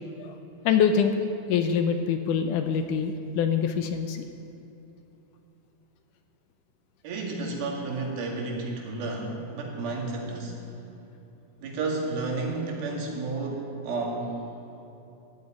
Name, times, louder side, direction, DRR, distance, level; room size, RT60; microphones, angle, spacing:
voice 1, 0.7-1.1 1.5-4.2, left 7 dB, 75° left, 7 dB, 2.0 m, -24 dB
voice 2, 7.0-10.6 11.6-14.4, right 3 dB, 90° right, 0 dB, 3.9 m, -31 dB
14.0 x 8.9 x 9.0 m, 2.9 s
omnidirectional pair, 4.1 m